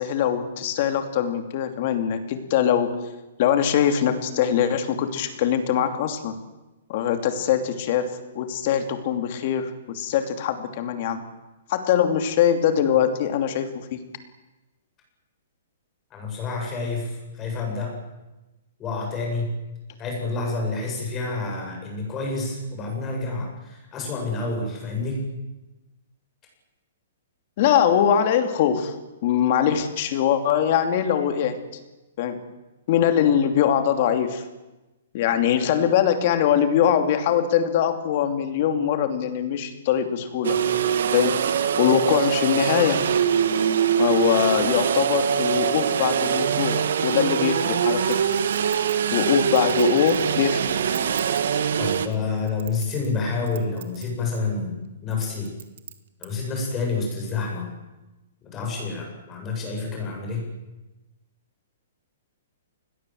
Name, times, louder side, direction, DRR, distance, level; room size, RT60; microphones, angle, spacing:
voice 1, 0.0-2.9 3.4-6.4 6.9-11.2 11.7-14.0 27.6-28.9 29.2-31.6 32.2-32.4 32.9-34.4 35.1-40.6 41.1-43.0 44.0-48.2 49.1-50.7, left 9 dB, 35° left, 8 dB, 2.8 m, -22 dB
voice 2, 16.1-17.9 18.8-19.5 20.0-25.2 51.8-55.5 56.2-57.7 58.4-60.5, left 3 dB, 15° left, 0 dB, 7.9 m, -28 dB
sound 1, 40.4-52.1, right 8 dB, 65° right, 2.1 m, -23 dB
Chink clink, 48.1-50.3 50.8-51.4 52.0-53.2 53.5-54.0 54.4-54.5 55.1-56.3 56.8-56.9, right 11 dB, 50° right, 2.3 m, -41 dB
28.5 x 21.0 x 7.9 m, 1.1 s
hypercardioid pair, 175°, 0 cm